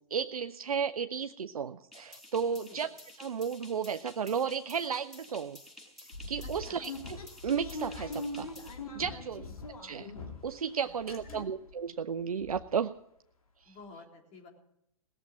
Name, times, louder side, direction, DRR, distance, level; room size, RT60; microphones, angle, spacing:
voice 1, 0.1-2.9 3.2-5.6 6.3-7.2 7.4-8.5 8.9-9.4 9.8-10.1 10.4-12.9 13.7-13.8, right 6 dB, 85° right, 9 dB, 0.6 m, -33 dB
sound 1, 1.9-8.8, left 1 dB, ahead, 5.8 m, -52 dB
sound 2, 6.1-10.6 10.9-11.7 12.1-12.2 12.4-12.6, left 2 dB, 80° left, 2.5 m, -42 dB
voice 2, 6.4-6.8 9.1-9.5 10.8-11.5 13.6-14.5, left 4 dB, 35° left, 1 dB, 3.7 m, -52 dB
18.5 x 7.5 x 9.6 m, 0.76 s
hypercardioid pair, 115°, 18 cm